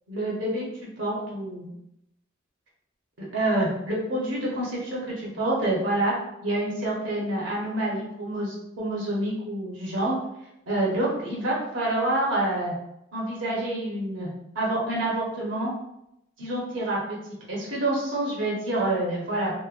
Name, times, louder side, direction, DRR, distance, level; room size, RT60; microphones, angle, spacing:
voice 1, 0.1-0.6 1.0-1.7 3.2-6.1 6.4-10.1 10.7-12.7 13.1-14.3 14.5-15.7 16.4-17.2 17.5-19.5, right 1 dB, 65° right, -5 dB, 0.9 m, -27 dB
3.0 x 2.1 x 2.4 m, 0.83 s
head